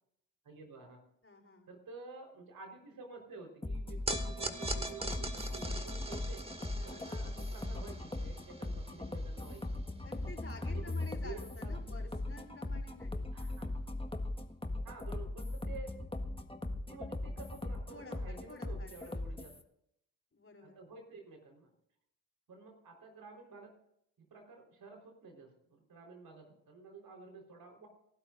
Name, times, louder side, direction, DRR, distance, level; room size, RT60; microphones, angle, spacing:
voice 1, 0.4-1.0 1.7-6.4 6.8-9.8 10.6-12.0 13.3-13.9 14.8-15.9 16.9-19.6 20.6-21.7 22.5-23.8 24.2-27.9, right 4 dB, 70° right, 2 dB, 4.4 m, -51 dB
voice 2, 1.2-1.7 6.8-7.3 10.0-13.3 17.9-19.6 20.3-20.8, left 3 dB, 35° left, -2 dB, 4.9 m, -52 dB
sound 1, 3.6-19.6, left 2 dB, 15° left, 1.6 m, -39 dB
sound 2, 4.1-10.5, right 2 dB, 15° right, 2.2 m, -43 dB
28.0 x 12.5 x 2.6 m, 0.74 s
supercardioid pair, 45°, 37 cm